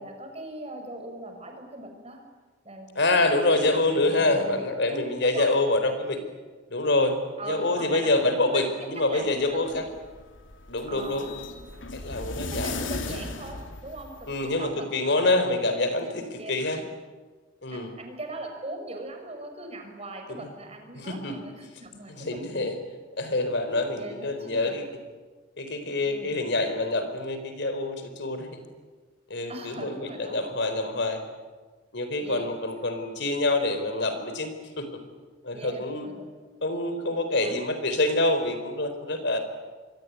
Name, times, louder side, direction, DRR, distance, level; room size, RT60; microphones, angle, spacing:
voice 1, 0.0-2.2 2.6-4.6 5.2-5.5 7.4-8.6 8.9-9.8 10.9-11.3 12.4-16.5 16.8-16.9 17.7-22.7 24.0-24.8 26.0-26.3 29.5-30.4 30.6-30.9 32.2-32.5 35.5-36.2 37.4-37.5, right 1 dB, 35° right, 4 dB, 6.1 m, -40 dB
voice 2, 3.0-6.2 6.7-7.2 7.5-9.8 10.7-11.3 11.9-12.7 14.3-16.8 17.6-17.9 20.3-20.4 20.9-21.4 22.2-22.7 23.2-24.8 25.6-28.6 29.3-31.2 31.9-34.5 34.8-34.9 35.4-36.1 36.6-39.4, left 2 dB, 65° left, 9 dB, 4.2 m, -26 dB
sound 1, 9.5-14.6, left 2 dB, 80° left, 2.8 m, -37 dB
27.0 x 23.0 x 9.6 m, 1.4 s
head